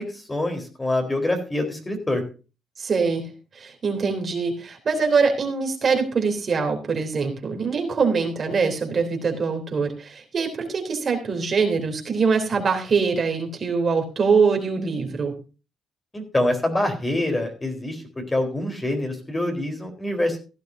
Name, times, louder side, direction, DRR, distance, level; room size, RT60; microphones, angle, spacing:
voice 1, 0.0-2.2 16.1-18.0 18.3-20.4, left 1 dB, 15° left, 4 dB, 4.0 m, -25 dB
voice 2, 2.8-3.3 3.5-15.3, right 5 dB, 45° right, 3 dB, 3.3 m, -23 dB
16.5 x 11.5 x 2.7 m, 0.32 s
cardioid pair, 90°, 0 cm